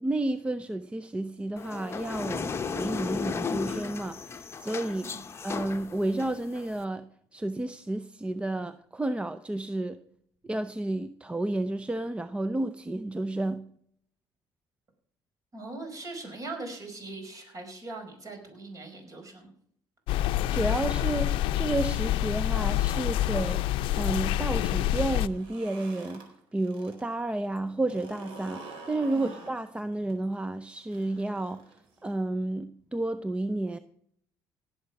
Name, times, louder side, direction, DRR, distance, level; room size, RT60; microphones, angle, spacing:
voice 1, 0.0-5.1 5.4-10.0 10.4-13.7 20.5-23.7 24.0-31.6 32.0-33.8, right 2 dB, 15° right, 0.6 m, -31 dB
sound 1, 1.6-6.8, left 5 dB, 30° left, 0.9 m, -35 dB
voice 2, 15.5-19.5 29.1-29.3, right 2 dB, 40° right, 5.2 m, -41 dB
sound 2, 20.1-25.3, left 14 dB, 85° left, 0.6 m, -27 dB
sound 3, 25.2-27.0 27.3-32.1, right 3 dB, 85° right, 4.1 m, -47 dB
17.5 x 7.7 x 5.9 m
cardioid pair, 100°, 9 cm